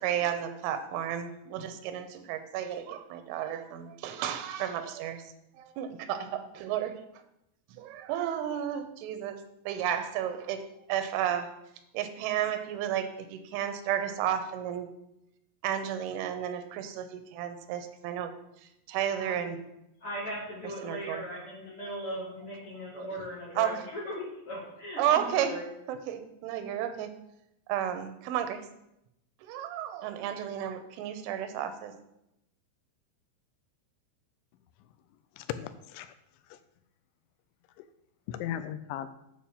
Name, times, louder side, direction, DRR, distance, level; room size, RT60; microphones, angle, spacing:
voice 1, 0.0-5.2 5.6-7.0 7.8-11.5 11.9-14.9 15.6-18.3 18.9-19.6 20.8-21.2 23.6-23.7 25.0-25.5 25.9-27.1 27.7-28.6 29.5-31.9, right 10 dB, 90° right, 9 dB, 3.4 m, -32 dB
voice 2, 20.0-25.7, equal, 45° left, -4 dB, 1.9 m, -38 dB
voice 3, 35.4-36.1 36.5-36.6 37.8-37.9 38.3-39.1, left 11 dB, 85° left, 12 dB, 2.9 m, -37 dB
9.2 x 4.5 x 7.1 m, 0.83 s
omnidirectional pair, 5.4 m